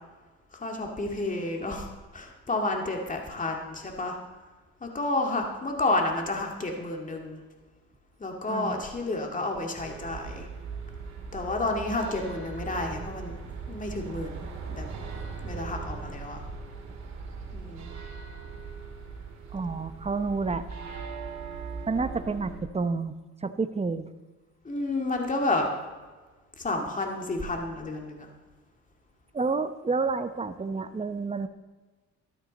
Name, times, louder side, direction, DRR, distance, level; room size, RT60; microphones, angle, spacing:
voice 1, 0.5-1.9 2.1-4.2 4.8-7.4 8.2-10.5 11.3-13.4 13.7-14.4 14.7-14.8 15.4-16.4 17.5-17.9 24.7-25.7 26.6-28.3, left 2 dB, 25° left, 2 dB, 2.2 m, -30 dB
voice 2, 8.5-8.8 19.5-20.6 21.9-23.1 23.4-24.1 29.3-31.5, right 4 dB, 20° right, 11 dB, 0.8 m, -29 dB
sound 1, 9.8-22.6, right 4 dB, 65° right, 2.9 m, -39 dB
13.5 x 13.0 x 4.1 m, 1.3 s
cardioid pair, 90°, 30 cm